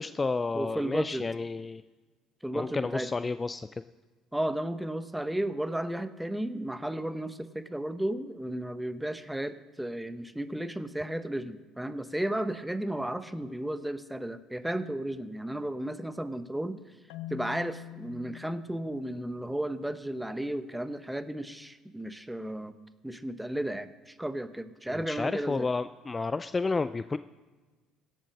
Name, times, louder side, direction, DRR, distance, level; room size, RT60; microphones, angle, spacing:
voice 1, 0.0-1.8 2.5-3.7 24.9-27.2, left 3 dB, 25° left, 13 dB, 0.4 m, -31 dB
voice 2, 0.5-1.3 2.4-3.1 4.3-16.8 17.3-22.7 23.0-25.7, right 1 dB, 5° right, 12 dB, 0.8 m, -34 dB
Marimba xylophone, 17.1-20.1, left 12 dB, 80° left, 0.7 m, -45 dB
16.5 x 8.4 x 6.5 m, 1.3 s
hypercardioid pair, 70°, 0 cm